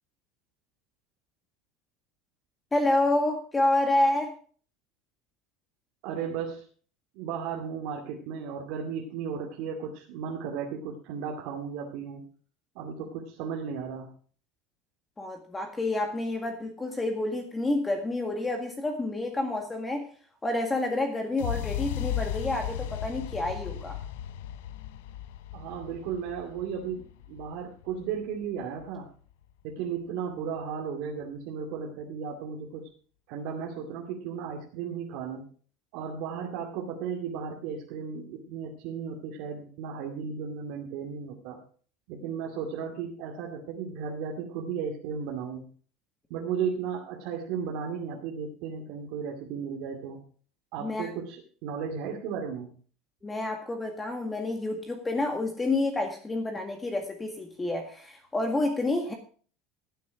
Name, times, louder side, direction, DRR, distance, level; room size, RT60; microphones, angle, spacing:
voice 1, 2.7-4.3 15.2-20.1 20.4-24.0 50.8-51.1 53.2-59.1, left 2 dB, 15° left, 4 dB, 2.0 m, -29 dB
voice 2, 6.0-6.6 7.1-12.2 12.7-14.1 25.5-29.1 29.6-32.9 33.3-35.5 35.9-41.6 42.1-45.6 46.3-50.2 50.7-52.7, right 6 dB, 70° right, -1 dB, 2.5 m, -35 dB
sound 1, 21.4-29.3, left 11 dB, 85° left, 0.8 m, -36 dB
15.0 x 8.5 x 4.9 m, 0.43 s
supercardioid pair, 125°, 0 cm